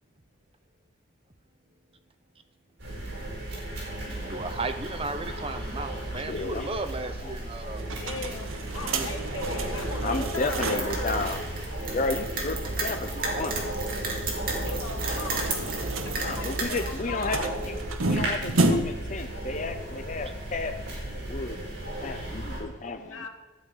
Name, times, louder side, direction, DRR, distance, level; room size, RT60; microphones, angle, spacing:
sound 1, 2.8-22.6, right 1 dB, 65° right, 4.8 m, -35 dB
voice 1, 4.1-7.8 8.8-9.1 13.1-13.2, right 3 dB, 25° right, 9 dB, 0.7 m, -35 dB
voice 2, 6.1-6.7 7.2-7.3 9.7-11.4 11.9-13.6 14.1-14.2 16.2-17.8 18.0-21.8 22.0-23.2, left 3 dB, 35° left, 6 dB, 0.6 m, -33 dB
sound 2, 7.8-11.0 11.4-11.5 11.7-11.8 14.6-19.1, right 2 dB, 85° right, 1.1 m, -31 dB
voice 3, 8.0-11.2 14.2-17.6 22.9-23.3, left 4 dB, 90° left, 1 dB, 1.6 m, -39 dB
sound 3, 10.2-16.9, right 3 dB, 45° right, 2.1 m, -35 dB
12.0 x 8.4 x 5.4 m, 1.1 s
head